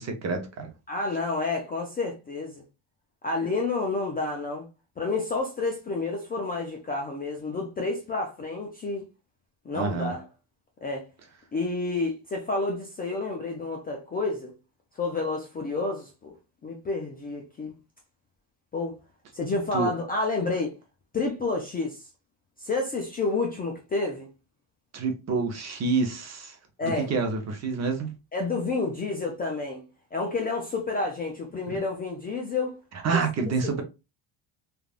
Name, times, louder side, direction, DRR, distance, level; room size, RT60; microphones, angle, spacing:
voice 1, 0.0-0.7 9.7-10.1 19.7-19.9 24.9-26.6 26.8-28.1 31.7-31.8 33.0-33.8, right 4 dB, 35° right, 0.7 m, -28 dB
voice 2, 0.9-2.6 3.2-4.7 5.0-9.0 9.7-10.2 10.8-11.1 11.5-14.5 15.0-16.3 16.6-17.8 18.7-19.0 19.3-20.8 21.1-22.0 22.6-24.3 26.8-27.1 28.3-29.8 30.1-32.8 33.1-33.2 33.6-33.8, left 3 dB, 20° left, 0.4 m, -29 dB
3.4 x 2.4 x 2.4 m
cardioid pair, 145°, 47 cm